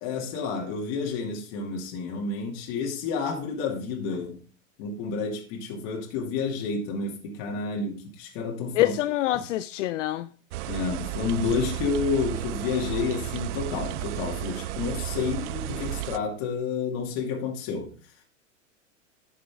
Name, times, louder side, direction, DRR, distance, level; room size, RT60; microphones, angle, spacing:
voice 1, 0.0-4.4 4.8-8.9 9.3-9.4 10.7-17.9, left 5 dB, 55° left, 2.5 m, -30 dB
voice 2, 8.7-10.3, left 14 dB, 70° left, 0.5 m, -25 dB
sound 1, 10.5-16.2, right 16 dB, 65° right, 0.5 m, -33 dB
11.0 x 6.4 x 3.6 m
hypercardioid pair, 105°, 38 cm